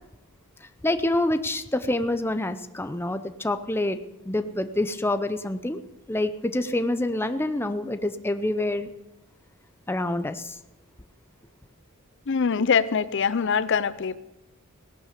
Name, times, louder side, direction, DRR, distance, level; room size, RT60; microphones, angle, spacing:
voice 1, 0.8-4.0 4.3-5.8 6.1-8.9 9.9-10.6, left 1 dB, 10° left, 9 dB, 0.6 m, -27 dB
voice 2, 12.3-14.2, left 6 dB, 55° left, 16 dB, 0.6 m, -23 dB
17.0 x 11.5 x 6.8 m, 0.94 s
head